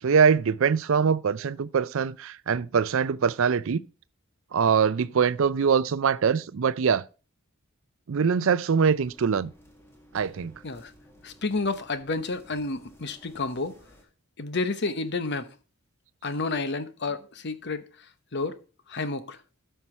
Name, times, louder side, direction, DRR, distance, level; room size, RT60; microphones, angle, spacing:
voice 1, 0.0-3.8 4.5-7.1 8.1-9.5 10.1-10.5, right 6 dB, 60° right, 0.4 m, -23 dB
sound 1, 8.8-14.0, equal, 10° left, 1.9 m, -55 dB
voice 2, 11.2-13.8 14.4-15.5 16.2-18.6 18.9-19.4, left 3 dB, 50° left, 0.9 m, -30 dB
13.0 x 5.7 x 4.3 m
head